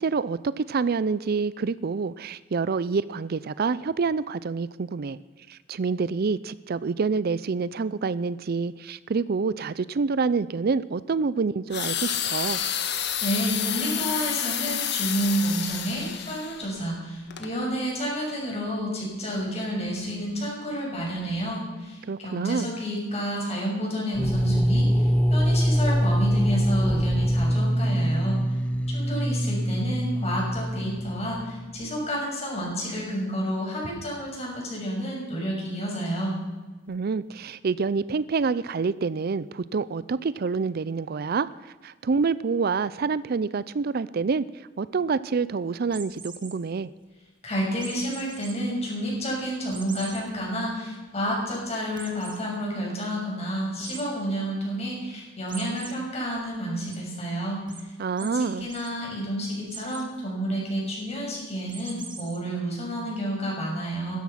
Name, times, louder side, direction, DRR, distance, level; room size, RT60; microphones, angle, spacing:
voice 1, 0.0-5.2 5.5-12.6 22.1-22.7 36.9-41.5 41.8-46.9 58.0-58.7, right 4 dB, 55° right, 17 dB, 0.4 m, -27 dB
sound 1, 11.7-16.7 17.3-17.5, left 9 dB, 60° left, 1.4 m, -29 dB
voice 2, 13.2-28.4 28.9-36.3 47.4-57.9 58.2-64.2, equal, 35° left, -2 dB, 6.6 m, -30 dB
sound 2, 24.1-31.9, equal, 5° left, 0.6 m, -24 dB
sound 3, 45.9-46.5 47.8-48.5 49.0-49.1 49.7-50.2 50.7-50.8 51.1-51.2 52.0-52.4 53.8-54.0 55.5-55.9 56.4-57.0 57.7-57.8 58.2-58.3 58.6-58.9 59.7-60.1 61.7-62.4, right 5 dB, 25° right, 1.8 m, -42 dB
16.0 x 13.0 x 5.8 m, 1.3 s
head